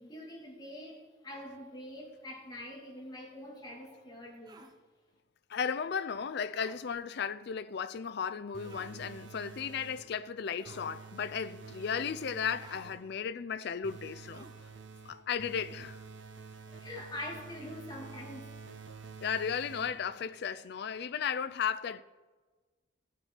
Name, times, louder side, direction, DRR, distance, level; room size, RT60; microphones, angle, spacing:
voice 1, 0.0-4.7 16.7-18.5, left 1 dB, 20° left, 2.0 m, -44 dB
sound 1, 4.5-4.7 6.5-6.8 8.6-9.0 10.6-10.9 12.6-12.9 14.3-14.7, right 2 dB, 20° right, 0.7 m, -53 dB
voice 2, 5.5-14.5 15.0-16.0 19.2-22.0, left 7 dB, 55° left, 0.4 m, -35 dB
sound 2, 8.5-10.2 10.6-13.1 13.8-20.2, right 5 dB, 70° right, 0.8 m, -49 dB
16.5 x 5.9 x 4.4 m
head